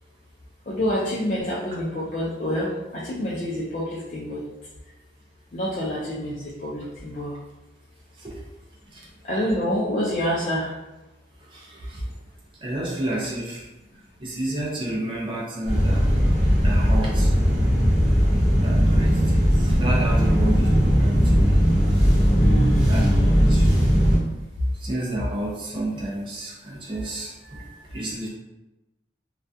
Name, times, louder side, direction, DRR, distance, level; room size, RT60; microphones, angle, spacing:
voice 1, 0.7-4.4 5.5-7.3 9.2-10.7 22.4-23.4 27.5-27.7, left 1 dB, 45° left, -7 dB, 0.4 m, -27 dB
voice 2, 11.5-12.0 12.6-13.7 14.2-16.1 16.6-17.3 18.6-21.6 22.9-23.7 24.7-27.3 27.9-28.3, right 1 dB, 30° right, -4 dB, 0.4 m, -30 dB
sound 1, 15.7-24.2, equal, 5° right, 1.0 m, -18 dB
2.3 x 2.2 x 2.6 m, 0.99 s
head